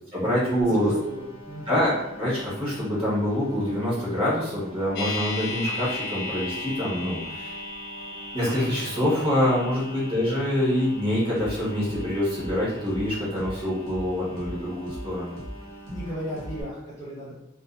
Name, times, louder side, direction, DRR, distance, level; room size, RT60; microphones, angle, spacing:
voice 1, 0.1-1.0 1.7-7.5 8.3-15.4, left 1 dB, 25° right, -7 dB, 0.9 m, -25 dB
sound 1, 0.6-16.6, equal, 75° left, 0.7 m, -45 dB
voice 2, 0.6-1.8 15.9-17.4, equal, 15° left, -10 dB, 0.7 m, -36 dB
sound 2, 4.9-15.0 15.3-15.4, left 2 dB, 50° left, 0.3 m, -38 dB
sound 3, 11.4-11.5 11.9-12.0 12.4-12.5 12.9-13.0 13.4-13.5 13.9-14.0 14.4-14.5 14.9-15.0 15.4-15.5 15.9-16.0 16.4-16.5, equal, 85° right, 0.5 m, -38 dB
2.4 x 2.4 x 2.3 m, 0.87 s
head